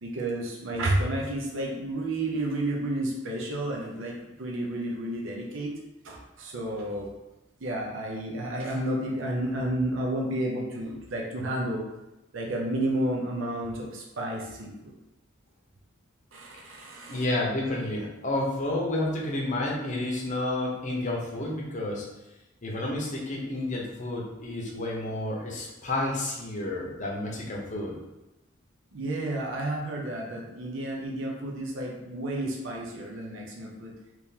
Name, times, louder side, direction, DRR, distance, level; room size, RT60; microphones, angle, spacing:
voice 1, 0.0-5.7 6.0-7.1 7.6-11.8 12.3-14.9 16.3-17.2 28.9-33.9, right 1 dB, 70° right, -1 dB, 0.6 m, -31 dB
voice 2, 17.1-22.1 22.6-28.0, left 1 dB, 40° left, -2 dB, 0.7 m, -30 dB
3.6 x 3.0 x 2.8 m, 0.98 s
head